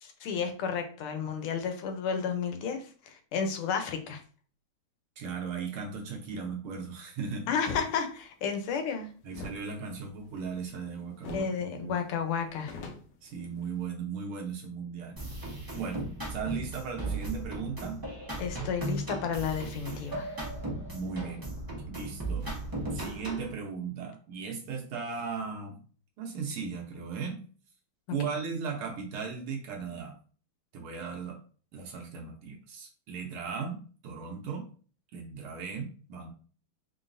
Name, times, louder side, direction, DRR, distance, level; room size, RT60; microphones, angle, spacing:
voice 1, 0.0-2.8 3.1-4.2 7.5-9.1 11.3-12.8 18.4-20.4 28.2-28.3, left 6 dB, 85° left, 6 dB, 1.6 m, -32 dB
voice 2, 5.2-7.5 9.2-11.9 13.2-15.2 15.7-18.0 20.9-21.5 21.9-22.5 22.9-25.8 26.2-27.4 28.1-30.2 30.7-31.4 31.7-34.6 35.1-36.3, right 5 dB, 80° right, 0 dB, 1.7 m, -37 dB
sound 1, 7.6-7.9 9.3-10.8 11.2-11.6 11.9-12.0 12.3-13.9, left 4 dB, 70° left, 1.1 m, -43 dB
sound 2, 15.2-23.5, right 2 dB, 25° right, 0.4 m, -37 dB
3.9 x 3.8 x 2.5 m, 0.41 s
omnidirectional pair, 2.4 m